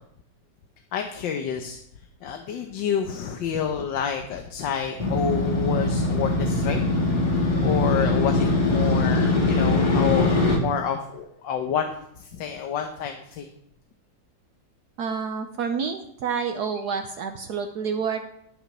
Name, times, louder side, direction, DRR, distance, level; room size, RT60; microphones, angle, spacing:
voice 1, 0.9-1.8 2.2-6.8 7.6-13.5, left 7 dB, 85° left, 5 dB, 1.6 m, -29 dB
Motorcycle, 5.0-10.6, left 2 dB, 25° left, 1.8 m, -22 dB
voice 2, 15.0-18.3, right 6 dB, 65° right, 6 dB, 1.2 m, -29 dB
11.5 x 6.6 x 6.1 m, 0.74 s
omnidirectional pair, 1.9 m